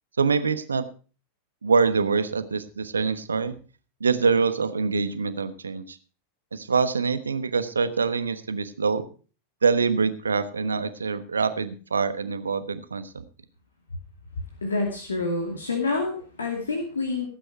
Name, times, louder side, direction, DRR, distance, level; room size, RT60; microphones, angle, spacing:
voice 1, 0.2-0.8 1.6-3.5 4.0-6.0 6.5-9.1 9.6-13.2, right 5 dB, 75° right, 12 dB, 1.1 m, -25 dB
voice 2, 14.6-17.3, left 3 dB, 70° left, 3 dB, 2.5 m, -27 dB
17.0 x 9.0 x 4.5 m, 0.37 s
figure-of-eight pair, 90°, 0 cm